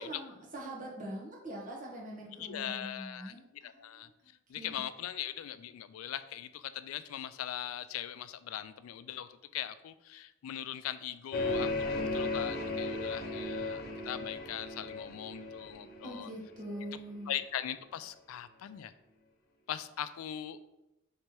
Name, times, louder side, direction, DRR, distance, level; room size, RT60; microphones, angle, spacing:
voice 1, 0.0-4.3 4.5-4.8 16.0-17.4, right 1 dB, 40° right, -3 dB, 1.1 m, -43 dB
voice 2, 2.4-3.3 3.6-4.1 4.5-16.3 17.3-18.9 19.7-20.6, left 11 dB, 80° left, 13 dB, 0.3 m, -40 dB
sound 1, 11.3-16.9, left 2 dB, 50° left, 0.6 m, -35 dB
3.2 x 3.0 x 4.5 m, 0.93 s
head